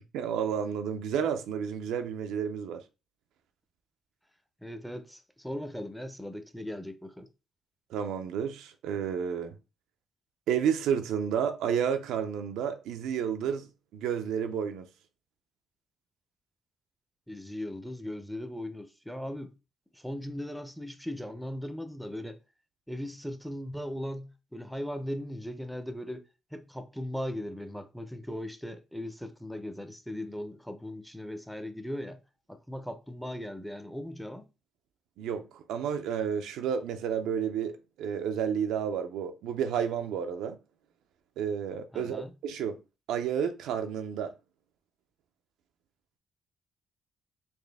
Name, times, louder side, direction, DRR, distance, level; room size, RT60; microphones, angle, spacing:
voice 1, 0.1-2.8 7.9-9.6 10.5-14.9 35.2-40.6 41.4-42.8 43.1-44.3, right 8 dB, 90° right, 0.5 m, -31 dB
voice 2, 4.6-7.3 17.3-19.5 19.9-22.4 22.9-26.2 26.5-32.2 32.5-34.5 41.9-42.3, left 1 dB, ahead, 0.6 m, -38 dB
4.2 x 2.7 x 3.4 m
cardioid pair, 90°, 0 cm